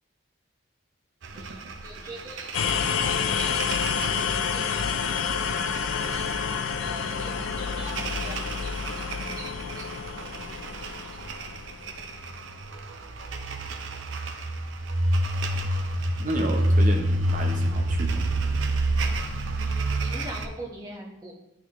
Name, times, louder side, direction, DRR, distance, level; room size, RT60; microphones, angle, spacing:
sound 1, 1.2-20.5, right 1 dB, 80° right, 0.6 m, -29 dB
voice 1, 1.3-3.8 4.3-4.9 5.9-6.3 6.8-7.9 8.2-8.6 9.4-9.8 19.6-21.3, right 1 dB, 20° right, -3 dB, 1.1 m, -43 dB
sound 2, 2.5-12.3, left 6 dB, 85° left, 0.4 m, -29 dB
voice 2, 16.2-18.2, right 1 dB, 40° right, 2 dB, 0.9 m, -31 dB
10.0 x 4.0 x 3.1 m, 0.88 s
head